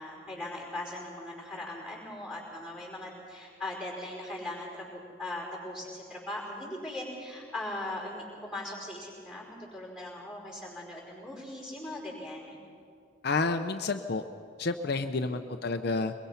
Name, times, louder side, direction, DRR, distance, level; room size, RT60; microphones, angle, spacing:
voice 1, 0.0-12.6 15.2-15.4, left 1 dB, 5° right, -2 dB, 4.9 m, -39 dB
voice 2, 13.2-14.2 14.6-16.1, left 3 dB, 55° left, 6 dB, 0.6 m, -30 dB
22.5 x 22.0 x 5.7 m, 2.3 s
head